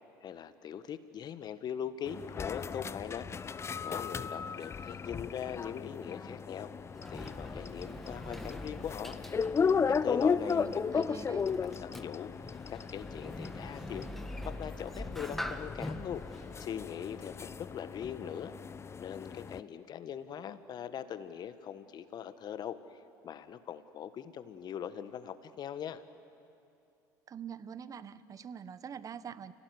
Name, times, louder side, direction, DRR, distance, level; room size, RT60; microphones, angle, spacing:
voice 1, 0.2-3.6 3.8-6.7 7.1-9.2 9.9-12.3 12.7-14.1 14.4-16.2 16.6-18.5 19.0-26.0, left 9 dB, 45° left, 11 dB, 1.5 m, -41 dB
sound 1, 2.1-19.6, left 6 dB, 25° left, 0.8 m, -35 dB
Sliding door, 6.6-17.9, left 1 dB, ahead, 1.5 m, -45 dB
voice 2, 10.4-11.5 27.3-29.5, right 7 dB, 35° right, 14 dB, 1.1 m, -45 dB
30.0 x 17.0 x 9.6 m, 2.6 s
hypercardioid pair, 70°, 10 cm